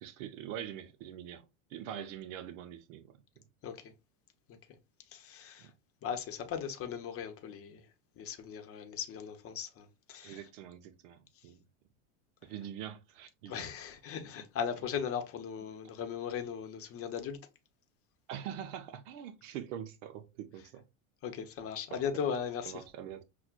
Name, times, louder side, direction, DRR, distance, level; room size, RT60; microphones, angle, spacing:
voice 1, 0.0-1.4 1.7-3.2 5.6-5.7 10.2-11.6 12.4-13.7 18.3-20.8 22.7-23.2, right 10 dB, 70° right, 0.7 m, -44 dB
voice 2, 5.1-5.7 6.0-7.9 8.2-10.4 13.5-17.4 21.2-22.8, left 7 dB, 35° left, 0.8 m, -38 dB
5.8 x 2.2 x 2.4 m
supercardioid pair, 120°, 39 cm